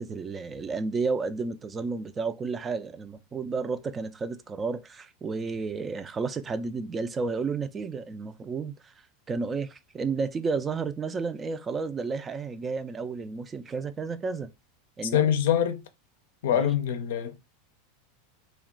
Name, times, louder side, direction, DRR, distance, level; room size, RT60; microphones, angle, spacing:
voice 1, 0.0-14.5 15.0-15.3 16.5-16.7, right 4 dB, 25° right, 0.3 m, -32 dB
voice 2, 15.1-15.8 16.4-17.4, left 10 dB, 75° left, 0.5 m, -24 dB
2.3 x 2.2 x 3.7 m
hypercardioid pair, 105°, 0 cm